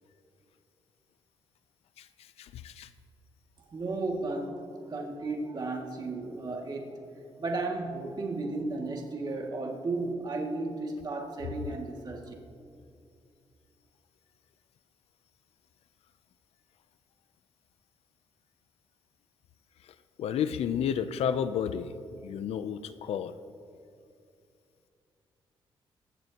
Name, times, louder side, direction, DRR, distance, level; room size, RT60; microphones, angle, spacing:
voice 1, 2.4-2.9 20.2-23.4, left 8 dB, 80° left, 12 dB, 0.6 m, -31 dB
voice 2, 3.7-7.0 7.4-12.3, right 3 dB, 40° right, 0 dB, 2.2 m, -34 dB
20.5 x 16.0 x 3.0 m, 2.5 s
cardioid pair, 90°, 10 cm